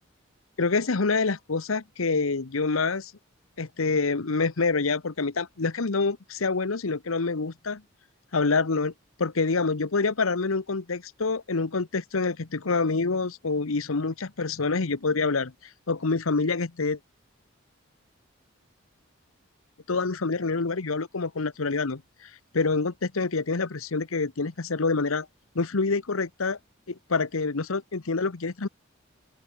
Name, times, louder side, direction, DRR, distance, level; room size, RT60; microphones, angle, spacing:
voice 1, 0.6-3.1 3.6-7.8 8.3-8.9 9.2-15.5 15.9-17.0 19.9-25.3 25.5-26.6 26.9-28.7, left 4 dB, 85° left, 1.0 m, -26 dB
open air
head